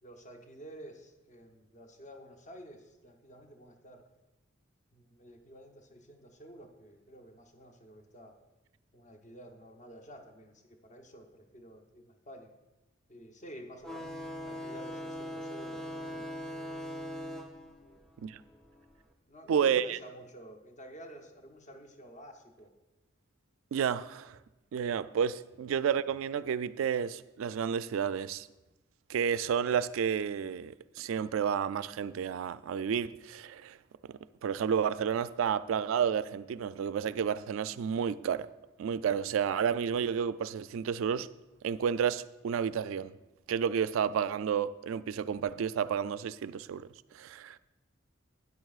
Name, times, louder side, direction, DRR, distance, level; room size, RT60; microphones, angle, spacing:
voice 1, 0.0-4.1 4.9-8.4 8.9-12.5 13.1-16.3 17.8-18.1 18.5-18.6 19.3-22.7, equal, 35° left, 0.8 m, -51 dB
sound 1, 13.8-19.0, equal, ahead, 0.5 m, -41 dB
voice 2, 19.5-20.0 23.7-24.4 24.7-28.5 29.1-33.8 34.4-38.5 38.8-41.3 41.6-43.1 43.5-46.9 47.1-47.6, right 7 dB, 80° right, 0.3 m, -31 dB
12.5 x 9.4 x 2.4 m
head